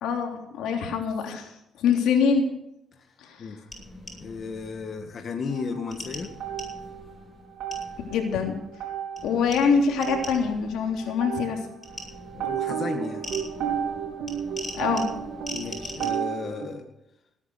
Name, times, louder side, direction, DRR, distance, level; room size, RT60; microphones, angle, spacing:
voice 1, 0.0-2.5 3.2-3.6 8.1-8.5 9.2-11.6 14.7-15.1, left 6 dB, 85° left, 3 dB, 3.2 m, -24 dB
voice 2, 3.0-3.6 4.2-6.3 12.3-13.2 15.5-16.9, left 5 dB, 50° left, 4 dB, 1.9 m, -34 dB
sound 1, 3.7-5.1 5.9-8.8 9.2-11.3 11.8-16.1, left 1 dB, 20° left, 6.9 m, -42 dB
sound 2, 5.5-7.2 7.5-16.7, right 8 dB, 85° right, 4.1 m, -33 dB
18.5 x 9.7 x 6.5 m, 0.83 s
cardioid pair, 90°, 0 cm